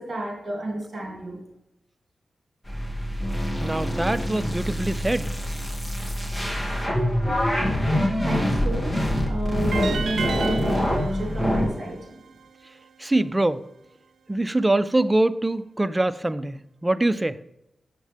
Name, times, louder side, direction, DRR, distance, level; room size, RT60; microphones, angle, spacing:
voice 1, 0.0-1.4 8.2-12.2, right 1 dB, 50° right, 2.5 m, -31 dB
sound 1, 2.7-11.7, equal, 10° left, 1.6 m, -25 dB
voice 2, 3.6-5.3 13.0-13.7 14.3-17.4, right 2 dB, 15° right, 0.3 m, -24 dB
sound 2, 9.7-12.9, right 6 dB, 90° right, 0.5 m, -34 dB
7.2 x 6.5 x 3.3 m
wide cardioid pair, 80°, 0 cm